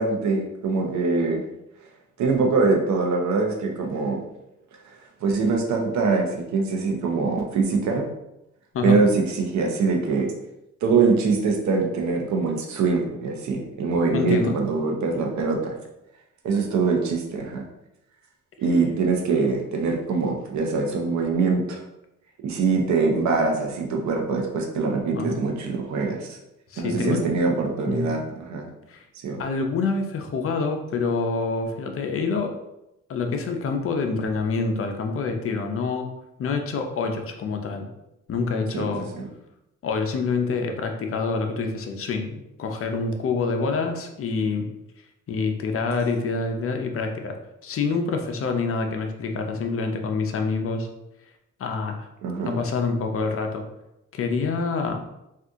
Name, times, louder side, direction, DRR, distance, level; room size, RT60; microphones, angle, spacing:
voice 1, 0.0-1.4 2.2-4.2 5.2-8.1 8.8-10.3 10.8-15.7 16.4-17.6 18.6-21.8 22.4-26.4 26.8-28.7 29.2-29.4 38.7-39.3 52.2-52.6, right 4 dB, 65° right, 1 dB, 0.7 m, -23 dB
voice 2, 14.1-14.6 25.1-25.4 26.7-27.3 27.9-28.1 28.9-29.0 29.4-32.5 33.1-36.1 36.4-37.9 38.3-39.1 39.8-44.7 45.3-47.3 47.6-50.9 51.6-52.1 52.4-53.6 54.1-55.0, left 4 dB, 45° left, 4 dB, 0.5 m, -26 dB
2.7 x 2.5 x 3.5 m, 0.88 s
cardioid pair, 90°, 30 cm